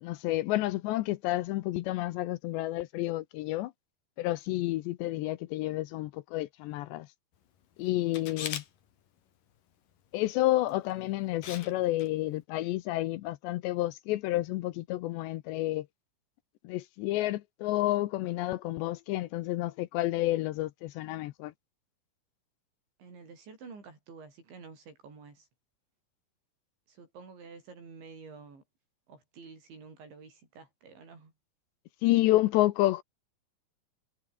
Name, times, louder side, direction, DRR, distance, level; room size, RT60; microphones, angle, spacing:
voice 1, 0.0-3.7 4.2-7.1 7.8-8.6 10.1-15.9 16.6-21.5 32.0-33.0, left 16 dB, 80° left, 2.8 m, -30 dB
Camera, 8.1-8.7 10.7-10.9 11.4-11.7 12.0-12.1, left 9 dB, 55° left, 3.6 m, -38 dB
voice 2, 23.0-25.5 26.9-28.6 29.1-31.3, right 4 dB, 70° right, 10.0 m, -50 dB
omnidirectional pair, 5.4 m